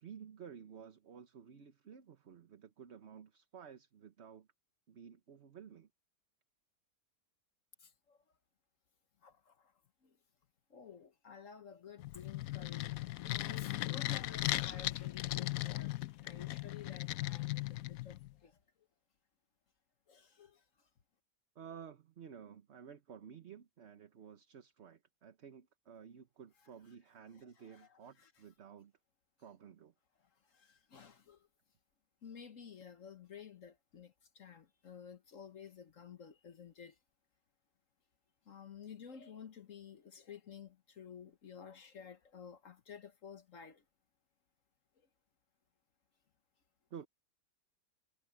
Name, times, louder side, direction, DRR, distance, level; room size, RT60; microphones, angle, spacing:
voice 1, 0.0-4.5 4.9-5.9 21.5-28.9 29.4-29.9 46.9-47.1, right 7 dB, 45° right, 1.1 m, -53 dB
voice 2, 9.2-9.5 10.7-12.9 13.3-15.9 16.2-18.5 20.1-20.5 27.4-28.3 30.9-31.4 32.2-36.9 38.5-43.8, left 7 dB, 55° left, 1.4 m, -53 dB
sound 1, 12.0-18.3, left 16 dB, 70° left, 0.9 m, -38 dB
omnidirectional pair, 1.8 m